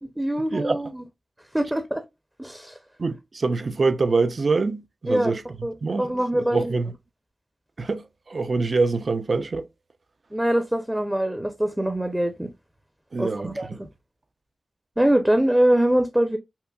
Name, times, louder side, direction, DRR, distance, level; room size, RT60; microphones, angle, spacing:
voice 1, 0.2-1.0 1.5-2.0 2.4-2.8 5.1-5.3 5.6-6.7 10.3-12.5 13.2-13.9 15.0-16.4, right 1 dB, 10° right, 0.6 m, -23 dB
voice 2, 3.0-5.4 5.8-6.9 7.8-9.7 13.1-13.8, right 3 dB, 55° right, 0.5 m, -25 dB
5.6 x 2.1 x 2.3 m
cardioid pair, 55°, 0 cm